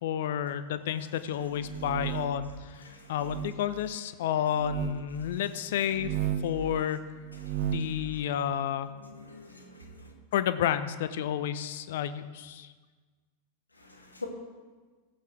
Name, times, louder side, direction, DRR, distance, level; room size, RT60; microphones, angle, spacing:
voice 1, 0.0-6.1 6.4-7.0 7.6-8.9 10.3-12.7, left 10 dB, 55° left, 13 dB, 0.6 m, -31 dB
sound 1, 1.5-2.5 3.2-3.5 4.5-5.0 5.9-6.6 7.2-7.9, right 11 dB, 40° right, 0.7 m, -33 dB
voice 2, 7.4-8.0 9.0-10.1 13.8-14.3, left 3 dB, 80° left, 1 dB, 1.8 m, -46 dB
16.0 x 8.3 x 3.4 m, 1.4 s
figure-of-eight pair, 90°, 0 cm